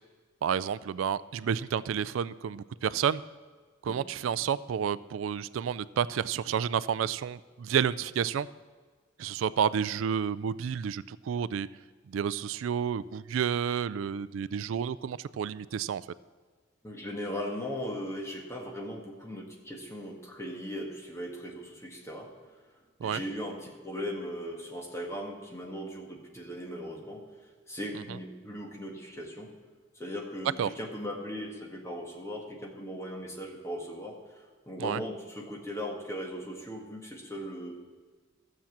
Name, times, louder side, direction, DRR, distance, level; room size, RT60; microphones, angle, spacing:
voice 1, 0.4-3.2 3.8-8.5 9.2-11.7 12.1-16.0 23.0-23.2 30.6-30.7 34.8-35.0, right 8 dB, 90° right, 18 dB, 0.3 m, -30 dB
voice 2, 16.8-22.3 23.0-27.2 27.7-29.5 29.9-37.7, equal, 15° left, 0 dB, 1.7 m, -38 dB
13.0 x 7.4 x 7.2 m, 1.5 s
head